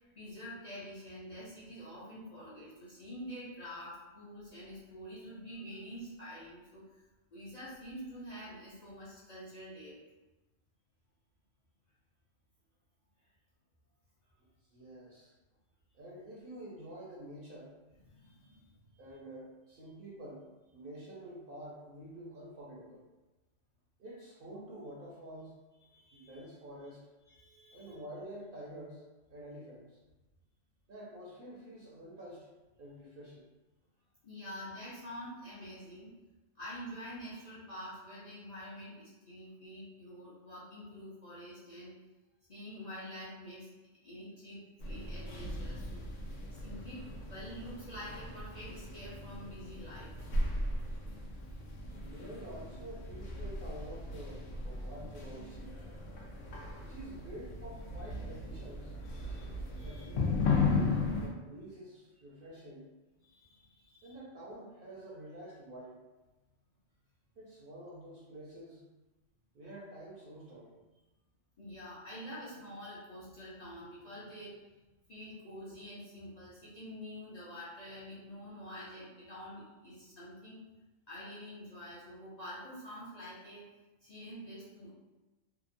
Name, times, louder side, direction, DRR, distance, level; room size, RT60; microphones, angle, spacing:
voice 1, 0.0-6.8 7.3-10.0 18.1-19.0 25.9-26.3 27.3-28.0 34.2-36.1 36.5-41.9 42.5-43.7 44.0-46.0 46.5-50.1 59.1-60.1 63.2-64.2 71.6-74.6 75.1-80.6 81.1-83.6 84.0-84.9, equal, 40° left, -10 dB, 0.7 m, -47 dB
voice 2, 14.7-15.3 15.9-17.7 19.0-23.0 24.0-25.5 26.1-27.1 27.7-29.0 29.3-30.0 30.9-32.5 32.8-33.5 51.9-55.8 56.8-58.9 59.8-62.9 64.0-66.0 67.4-68.8 69.5-70.7, right 1 dB, 55° right, -6 dB, 0.7 m, -48 dB
sound 1, 44.8-61.3, left 3 dB, 75° left, 0.9 m, -36 dB
2.8 x 2.2 x 2.5 m, 1.1 s
omnidirectional pair, 1.3 m